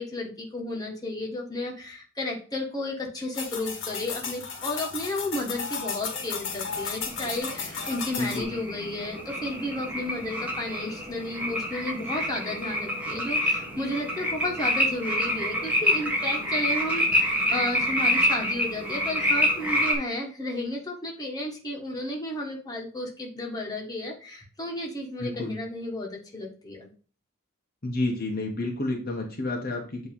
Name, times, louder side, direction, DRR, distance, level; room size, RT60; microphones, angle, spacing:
voice 1, 0.0-26.9, left 1 dB, 20° left, -1 dB, 1.7 m, -33 dB
sound 1, 3.3-8.4, left 5 dB, 65° left, 1.6 m, -34 dB
sound 2, 6.2-19.9, equal, 10° right, 1.7 m, -27 dB
voice 2, 8.2-8.5 25.2-25.5 27.8-30.1, left 2 dB, 45° left, 0 dB, 1.2 m, -30 dB
8.6 x 3.3 x 5.3 m, 0.38 s
head